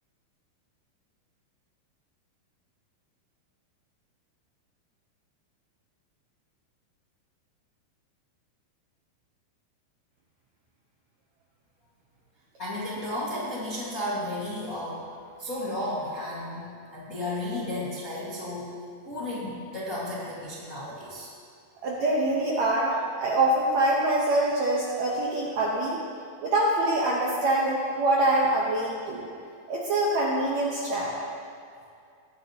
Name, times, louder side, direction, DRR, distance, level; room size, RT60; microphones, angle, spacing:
voice 1, 12.6-18.7 19.0-21.3, left 1 dB, 45° left, -8 dB, 1.1 m, -33 dB
voice 2, 21.8-26.0 26.4-29.3 29.7-31.1, right 1 dB, 70° right, -4 dB, 1.7 m, -25 dB
19.0 x 10.0 x 2.9 m, 2.4 s
omnidirectional pair, 4.4 m